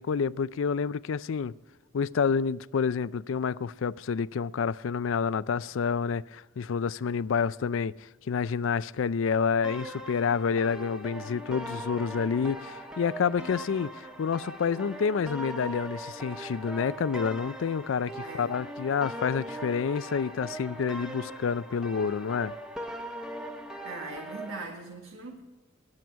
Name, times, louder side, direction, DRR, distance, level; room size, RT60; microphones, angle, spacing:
voice 1, 0.0-1.5 1.9-7.9 8.3-22.5, left 6 dB, 70° left, 0.4 m, -28 dB
sound 1, 9.6-24.6, right 1 dB, 5° right, 0.9 m, -40 dB
voice 2, 18.2-18.5 23.8-25.4, right 3 dB, 80° right, 1.6 m, -40 dB
20.0 x 7.7 x 4.6 m
head